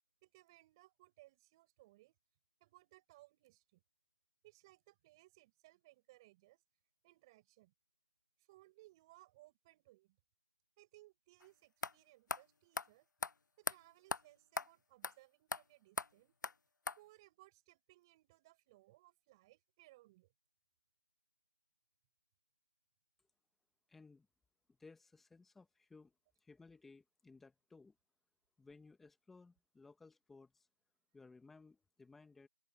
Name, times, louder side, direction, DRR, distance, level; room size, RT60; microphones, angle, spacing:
voice 1, 0.2-2.2 2.6-3.8 4.4-6.6 7.0-7.7 8.5-10.2 10.8-13.1 13.6-16.4 17.0-20.3, right 19 dB, 15° right, 6.6 m, -65 dB
sound 1, 11.4-11.5 11.8-11.9 12.3-12.4 12.8-12.9 13.2-13.3 13.7-13.8 14.1-14.2 14.6-14.7 15.0-15.1 15.5-15.6 16.0-16.1 16.4-16.5 16.9-17.0, left 4 dB, 70° left, 0.6 m, -39 dB
voice 2, 23.9-24.3 24.7-26.1 26.4-28.0 28.6-30.7 31.1-32.5, left 3 dB, ahead, 1.7 m, -60 dB
open air
figure-of-eight pair, 170°, 10 cm